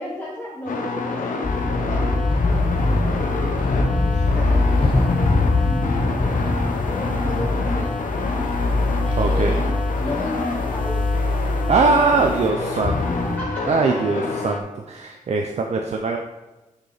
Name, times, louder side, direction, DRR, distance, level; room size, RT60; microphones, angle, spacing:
voice 1, 0.0-1.3 1.7-2.4 3.9-7.9 9.0-11.1 11.8-12.9 13.2-14.0, left 1 dB, 10° left, -5 dB, 1.3 m, -34 dB
sound 1, 0.7-14.6, left 3 dB, 80° left, 1.1 m, -28 dB
sound 2, 1.4-13.4, left 2 dB, 40° left, 1.0 m, -22 dB
voice 2, 9.1-9.6 11.7-12.9 13.7-16.2, right 4 dB, 55° right, 3 dB, 0.6 m, -21 dB
7.9 x 6.7 x 4.1 m, 1.1 s
wide cardioid pair, 160°, 14 cm